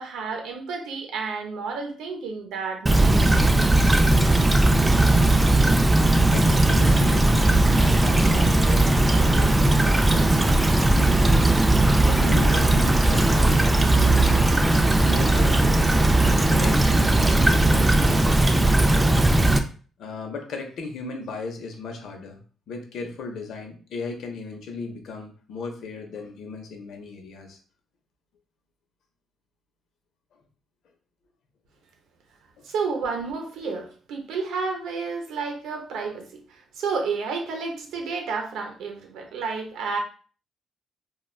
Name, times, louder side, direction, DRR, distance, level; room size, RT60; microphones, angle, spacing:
voice 1, 0.0-3.5 32.6-40.0, right 4 dB, 85° right, 2 dB, 0.7 m, -31 dB
Stream / Trickle dribble, 2.9-19.6, right 2 dB, 15° right, 0.3 m, -18 dB
voice 2, 6.3-11.5 12.1-14.5 15.0-18.8 20.0-22.4 22.7-27.6 32.6-32.7, left 4 dB, 75° left, 3 dB, 0.7 m, -36 dB
3.1 x 2.3 x 2.3 m, 0.40 s
cardioid pair, 90°, 0 cm